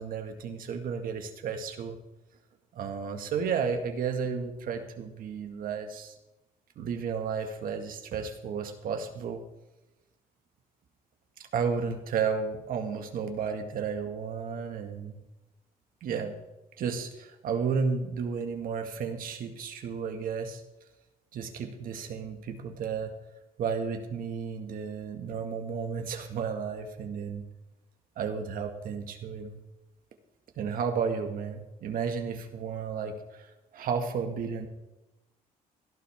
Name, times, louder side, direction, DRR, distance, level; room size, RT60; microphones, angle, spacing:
voice 1, 0.0-2.0 2.7-6.1 6.8-9.4 11.5-15.2 16.0-16.4 16.8-20.6 21.3-23.1 23.6-27.4 28.2-29.6 30.6-34.7, right 6 dB, 65° right, 5 dB, 1.9 m, -33 dB
16.5 x 12.0 x 3.6 m, 0.97 s
cardioid pair, 105°, 16 cm